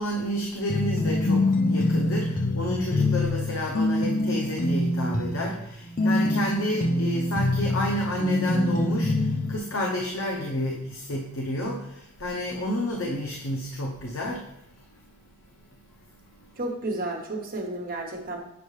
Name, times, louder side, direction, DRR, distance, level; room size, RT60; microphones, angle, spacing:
voice 1, 0.0-15.1 15.6-16.7, equal, 85° left, 0 dB, 0.8 m, -30 dB
sound 1, 0.7-9.6, left 2 dB, 40° left, 0.5 m, -25 dB
voice 2, 16.6-18.4, right 2 dB, 45° right, 1 dB, 1.1 m, -32 dB
7.0 x 5.3 x 3.2 m, 0.81 s
head